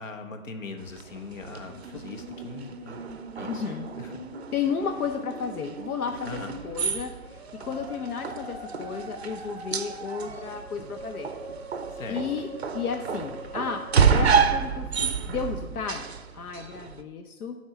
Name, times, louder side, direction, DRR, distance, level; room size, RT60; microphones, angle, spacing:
voice 1, 0.0-3.1 3.4-3.6 4.0-4.1 6.2-6.5 11.9-12.2, left 3 dB, 60° left, 7 dB, 1.2 m, -40 dB
sound 1, 0.8-17.0, right 6 dB, 50° right, 0.5 m, -30 dB
Musical instrument, 1.4-14.4, right 1 dB, 5° right, 1.0 m, -42 dB
voice 2, 3.4-3.9 4.5-11.3 12.1-12.5 12.7-13.8 14.1-16.1 16.3-17.6, left 6 dB, 80° left, 6 dB, 0.8 m, -33 dB
7.3 x 4.4 x 5.9 m, 1.2 s
hypercardioid pair, 170°, 43 cm